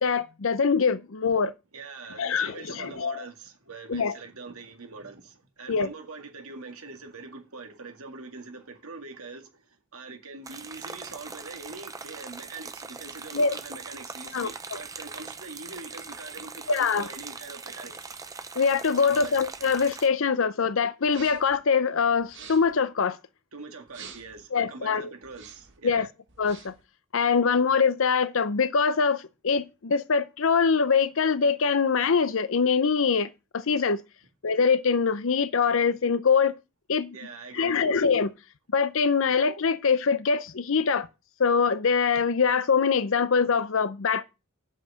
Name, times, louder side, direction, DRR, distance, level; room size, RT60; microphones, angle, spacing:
voice 1, 0.0-1.5 2.2-3.2 3.9-4.1 5.7-5.9 13.3-13.5 14.3-14.5 16.7-17.1 18.6-23.2 24.5-25.1 25.8-26.1 26.4-26.7 27.1-34.0 34.4-36.5 36.9-37.1 37.5-38.3 38.7-41.1 41.4-44.2, left 5 dB, 60° left, 0.6 m, -23 dB
voice 2, 1.7-17.9 19.0-19.3 23.5-26.1 37.1-38.0, right 3 dB, 75° right, 2.0 m, -43 dB
sound 1, 10.5-20.1, right 4 dB, 15° right, 0.6 m, -41 dB
sound 2, 21.0-21.6 22.2-22.8 23.9-24.4 25.2-25.8 26.3-26.8, right 6 dB, 55° right, 1.7 m, -47 dB
7.4 x 5.7 x 7.5 m
head